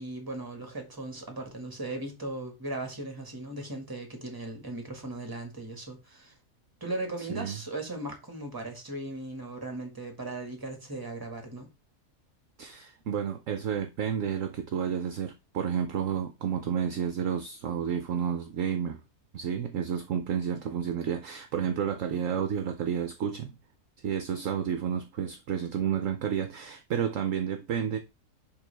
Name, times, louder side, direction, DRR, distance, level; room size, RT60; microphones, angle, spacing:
voice 1, 0.0-6.3 6.8-11.7, right 2 dB, 15° right, 1.6 m, -37 dB
voice 2, 7.2-7.6 12.6-19.0 19.3-23.6 24.0-28.0, right 8 dB, 65° right, 0.9 m, -31 dB
10.5 x 3.7 x 3.4 m
omnidirectional pair, 1.7 m